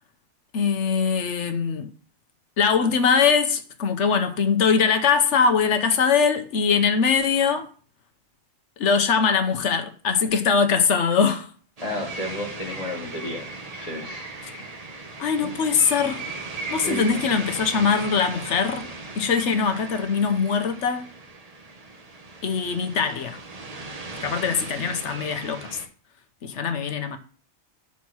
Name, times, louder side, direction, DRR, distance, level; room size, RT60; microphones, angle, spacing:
voice 1, 0.5-1.9 2.6-7.7 8.8-11.5 14.4-14.6 15.2-16.2 16.7-18.8 19.2-21.0 22.4-23.4 24.2-25.8 26.4-27.2, left 6 dB, 80° left, 1.2 m, -22 dB
voice 2, 11.8-15.0 15.4-15.5 16.8-17.2, left 1 dB, 30° left, 1.7 m, -33 dB
sound 1, 11.8-25.9, right 3 dB, 35° right, 0.9 m, -37 dB
6.1 x 4.2 x 6.0 m
omnidirectional pair, 1.2 m